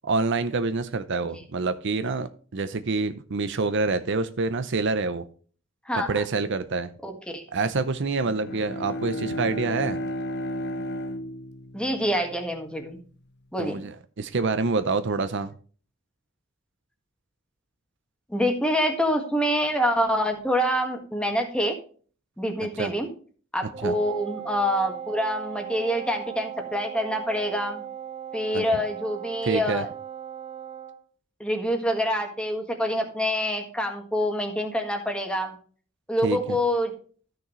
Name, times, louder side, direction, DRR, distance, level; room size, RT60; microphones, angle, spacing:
voice 1, 0.0-5.3 6.1-6.9 7.5-10.0 13.6-15.5 22.8-22.9 23.8-23.9 28.5-28.6 29.4-29.8 36.2-36.6, right 3 dB, 60° right, 11 dB, 0.7 m, -27 dB
voice 2, 5.8-6.2 7.0-7.4 11.7-13.0 13.5-13.8 18.3-21.8 22.4-23.1 23.5-27.8 28.3-29.9 31.4-35.6 36.1-36.9, equal, 5° left, 4 dB, 1.7 m, -26 dB
Bowed string instrument, 8.2-12.8, equal, 55° left, 0.7 m, -33 dB
Wind instrument woodwind instrument, 23.7-31.0, right 9 dB, 30° right, 0.8 m, -38 dB
13.5 x 6.3 x 3.2 m, 0.42 s
head